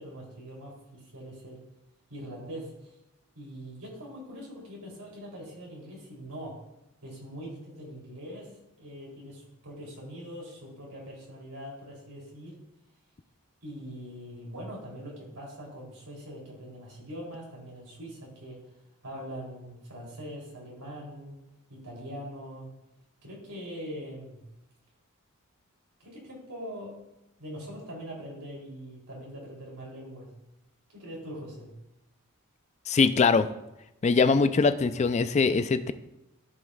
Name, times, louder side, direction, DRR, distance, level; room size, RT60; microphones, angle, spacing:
voice 1, 0.0-1.6 2.1-2.9 3.3-6.5 7.0-8.5 8.8-12.6 13.6-18.6 19.0-21.4 21.7-22.7 23.2-24.4 26.0-26.9 27.4-30.3 30.9-31.7, equal, 90° right, -3 dB, 3.1 m, -42 dB
voice 2, 32.9-33.5 34.0-35.9, left 4 dB, 30° left, 11 dB, 0.4 m, -22 dB
14.5 x 5.3 x 2.3 m, 0.91 s
head